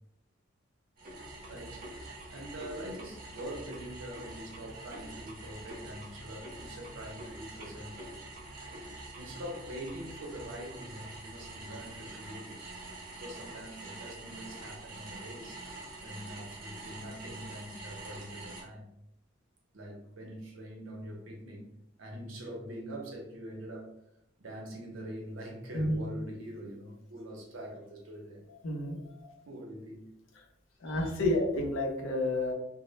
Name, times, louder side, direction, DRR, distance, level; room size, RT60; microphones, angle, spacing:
sound 1, 1.0-18.6, right 2 dB, 45° right, 0.7 m, -45 dB
voice 1, 1.5-1.8 2.3-8.0 9.2-12.6 13.1-15.6 16.0-18.9 19.7-21.7 22.0-23.9 24.4-28.5 29.5-30.2 30.9-31.2 31.5-31.6, equal, 85° right, 1 dB, 0.6 m, -44 dB
voice 2, 28.6-29.3 30.8-32.5, left 1 dB, 90° left, 0 dB, 0.6 m, -30 dB
2.1 x 2.0 x 3.0 m, 0.80 s
head